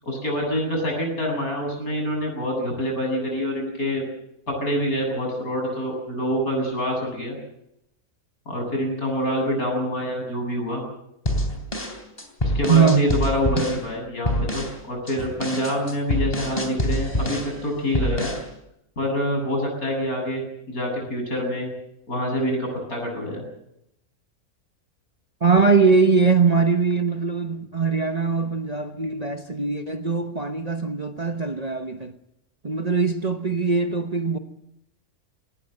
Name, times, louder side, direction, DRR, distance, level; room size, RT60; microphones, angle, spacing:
voice 1, 0.0-4.0 4.5-7.4 8.5-10.8 12.4-18.3 19.0-21.7 22.1-23.4, equal, 80° left, 8.6 m, -26 dB
sound 1, 11.3-13.8 14.3-14.8 15.1-17.6 17.9-18.5, equal, 25° left, 3.5 m, -26 dB
voice 2, 12.7-13.1 13.6-13.7 25.4-32.1 32.6-34.4, right 5 dB, 30° right, 0.9 m, -21 dB
19.5 x 18.5 x 8.0 m
omnidirectional pair, 1.5 m